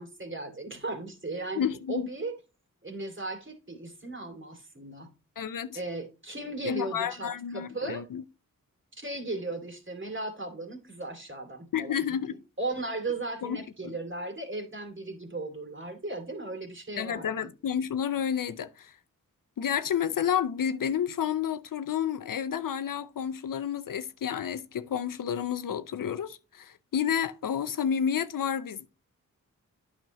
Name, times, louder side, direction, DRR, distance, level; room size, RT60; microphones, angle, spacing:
voice 1, 0.0-2.3 2.8-5.1 5.7-8.0 8.9-17.5, right 2 dB, 35° right, 2.5 m, -37 dB
voice 2, 1.5-2.0 5.4-5.8 6.6-8.2 11.7-12.3 13.4-13.6 17.0-18.9 19.6-28.9, left 8 dB, 70° left, 0.6 m, -30 dB
9.2 x 6.1 x 3.0 m
cardioid pair, 40°, 34 cm